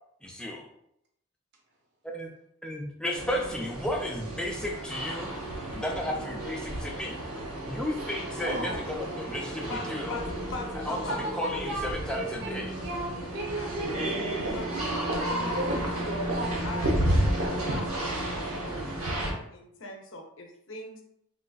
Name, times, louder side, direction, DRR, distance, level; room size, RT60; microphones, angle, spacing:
voice 1, 0.2-0.7 2.0-2.3 2.6-5.3 5.7-7.2 7.7-10.2 10.9-11.0 11.3-12.7, left 1 dB, 5° left, 0 dB, 0.3 m, -33 dB
sound 1, 3.1-19.3, right 1 dB, 80° right, 0.8 m, -32 dB
voice 2, 8.4-8.8 11.1-12.5 12.8-14.0 14.7-17.6, right 1 dB, 50° right, 0 dB, 0.6 m, -36 dB
voice 3, 9.7-11.3 13.5-13.7 14.5-15.6 16.2-17.1 17.5-21.0, left 2 dB, 60° left, 2 dB, 0.6 m, -41 dB
3.9 x 2.4 x 2.3 m, 0.74 s
head